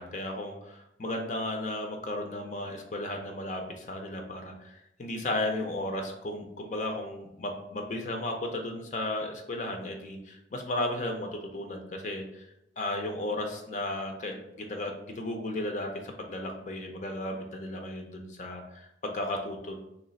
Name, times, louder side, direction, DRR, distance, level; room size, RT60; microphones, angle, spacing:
voice 1, 0.0-12.5 12.8-15.9 16.2-19.8, left 1 dB, 40° left, 3 dB, 0.5 m, -34 dB
3.1 x 3.1 x 3.9 m, 0.82 s
head